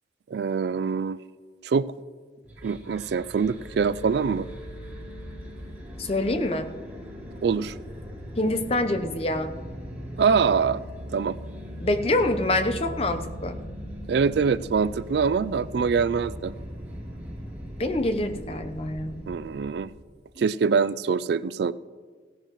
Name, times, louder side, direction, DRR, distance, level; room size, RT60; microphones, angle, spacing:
voice 1, 0.3-1.2 1.6-1.8 2.6-4.5 7.4-7.7 10.2-10.8 11.1-11.4 14.1-16.5 19.3-19.9 20.4-21.7, right 5 dB, 65° right, 17 dB, 0.3 m, -24 dB
sound 1, 2.4-19.9, equal, 10° right, 2.9 m, -39 dB
voice 2, 6.0-6.7 8.4-9.5 11.8-13.6 17.8-19.2, left 1 dB, 30° left, 8 dB, 0.7 m, -26 dB
16.5 x 14.5 x 3.1 m, 1.5 s
head